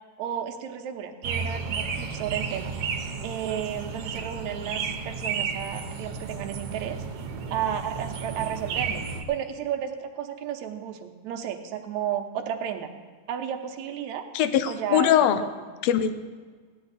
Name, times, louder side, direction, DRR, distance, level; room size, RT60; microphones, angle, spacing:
voice 1, 0.2-2.7 3.2-7.0 7.5-12.9 13.3-14.3 14.7-15.7, right 9 dB, 80° right, 5 dB, 2.2 m, -33 dB
sound 1, 1.2-9.2, right 5 dB, 65° right, 1.8 m, -32 dB
voice 2, 14.3-15.4 15.8-16.1, left 10 dB, 75° left, 11 dB, 1.7 m, -21 dB
16.5 x 10.5 x 4.1 m, 1.5 s
omnidirectional pair, 3.3 m